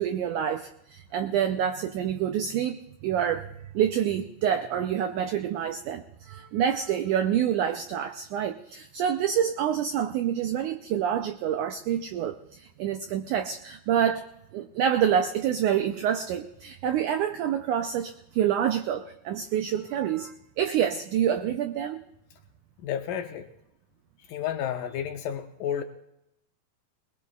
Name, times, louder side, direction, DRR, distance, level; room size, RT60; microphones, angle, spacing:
voice 1, 0.0-3.5 3.7-14.3 14.5-22.0, right 9 dB, 85° right, 7 dB, 1.7 m, -27 dB
voice 2, 22.8-23.5 24.3-25.8, left 9 dB, 80° left, 5 dB, 2.1 m, -31 dB
22.0 x 20.5 x 2.4 m, 0.83 s
omnidirectional pair, 4.3 m